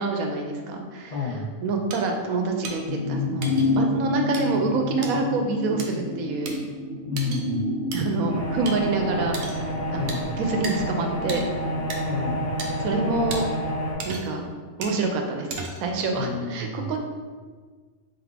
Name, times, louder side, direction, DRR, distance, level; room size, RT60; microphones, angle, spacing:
voice 1, 0.0-1.1 1.6-6.6 7.9-11.4 12.8-13.5 14.0-14.5 14.8-17.0, right 3 dB, 90° right, 3 dB, 1.1 m, -27 dB
voice 2, 1.1-1.5 7.1-7.6 9.9-10.3 12.0-12.5 16.2-17.0, left 4 dB, 60° left, -5 dB, 0.4 m, -31 dB
sound 1, 1.9-2.0 2.6-2.8 3.4-3.7 4.3-4.4 5.0-5.1 5.8-5.9 6.5-6.6 7.2-7.4 7.9-8.0 8.7-8.8 9.3-9.6 10.1-10.2 10.6-10.8 11.3-11.4 11.9-12.0 12.6-12.7 13.3-13.4 14.0-14.4 14.8-15.0 15.5-15.9, right 3 dB, 60° right, 0.8 m, -34 dB
sound 2, 2.8-12.7 13.0-13.1, left 2 dB, 45° left, 1.1 m, -29 dB
sound 3, 8.3-13.9, equal, 25° left, 1.5 m, -29 dB
3.7 x 3.6 x 3.4 m, 1.5 s
omnidirectional pair, 1.4 m